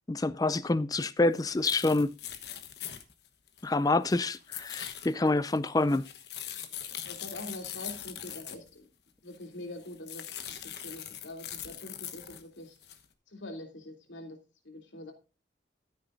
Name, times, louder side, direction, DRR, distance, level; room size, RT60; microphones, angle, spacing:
voice 1, 0.1-2.1 3.6-6.0, left 2 dB, 20° left, 0.4 m, -27 dB
sound 1, 1.4-1.5 1.7-3.7 4.1-8.7 9.3-9.4 9.8-12.4 12.8-13.0, left 10 dB, 65° left, 1.1 m, -42 dB
voice 2, 7.0-8.9 9.2-10.4 10.6-12.7 13.3-14.4 14.6-15.1, left 1 dB, 90° left, 3.0 m, -44 dB
14.0 x 9.1 x 2.6 m
head